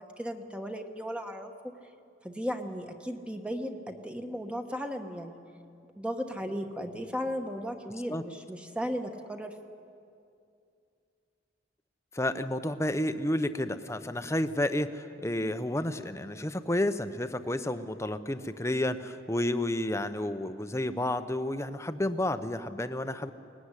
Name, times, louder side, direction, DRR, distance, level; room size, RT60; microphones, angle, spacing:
voice 1, 0.0-1.5 2.2-5.4 6.0-9.5, equal, 5° right, 5 dB, 1.2 m, -36 dB
voice 2, 12.1-23.3, left 1 dB, 15° left, 10 dB, 0.8 m, -31 dB
23.0 x 19.5 x 9.9 m, 2.5 s
head